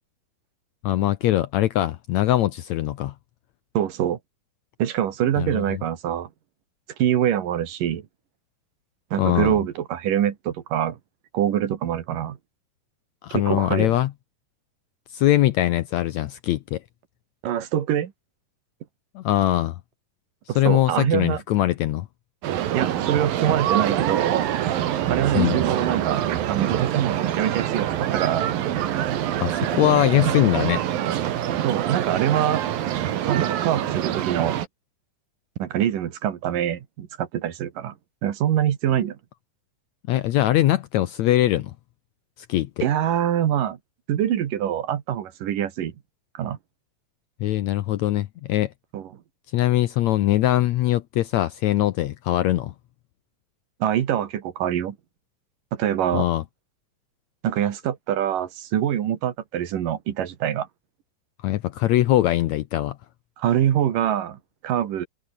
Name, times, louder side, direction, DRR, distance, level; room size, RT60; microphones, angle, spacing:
voice 1, 0.8-3.1 5.4-5.8 9.2-9.6 13.2-14.1 15.1-16.8 19.1-19.8 20.5-22.1 25.3-25.6 29.4-30.8 40.1-41.7 42.5-42.8 47.4-48.7 49.5-52.7 56.1-56.4 61.4-63.0, left 14 dB, 70° left, 1.8 m, -22 dB
voice 2, 3.7-4.2 4.8-6.3 7.0-8.0 9.1-11.0 11.3-12.4 13.3-14.0 17.4-18.1 20.5-21.4 22.7-24.5 25.1-28.5 31.6-32.6 33.3-34.6 35.6-37.9 38.2-39.2 42.8-43.8 44.1-45.9 46.3-46.6 48.9-49.1 53.8-55.0 55.7-56.3 57.4-60.7 63.4-65.1, right 10 dB, 75° right, 3.4 m, -24 dB
sound 1, 22.4-34.7, right 11 dB, 90° right, 3.5 m, -25 dB
omnidirectional pair, 3.9 m